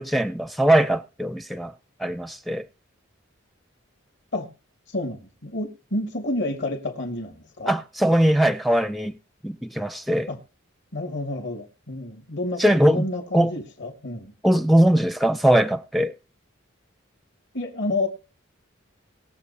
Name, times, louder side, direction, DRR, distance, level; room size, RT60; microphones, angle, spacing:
voice 1, 0.0-1.7 2.0-2.7 7.7-9.1 9.4-10.3 12.6-13.1 13.3-13.5 14.4-16.1, right 1 dB, ahead, 0.5 m, -20 dB
voice 2, 4.9-7.7 10.3-10.4 10.9-14.3 17.5-18.1, left 2 dB, 55° left, 2.5 m, -30 dB
21.0 x 7.7 x 2.9 m
head